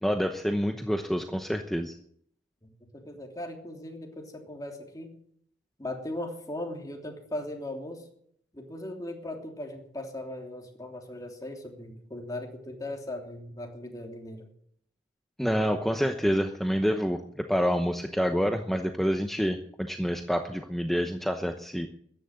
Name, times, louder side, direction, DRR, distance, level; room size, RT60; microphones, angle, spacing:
voice 1, 0.0-1.9 15.4-21.9, equal, ahead, 5 dB, 0.9 m, -27 dB
voice 2, 3.0-5.2 5.8-8.0 8.5-14.5, left 1 dB, 20° left, 2 dB, 3.1 m, -38 dB
14.5 x 10.5 x 7.7 m, 0.66 s
head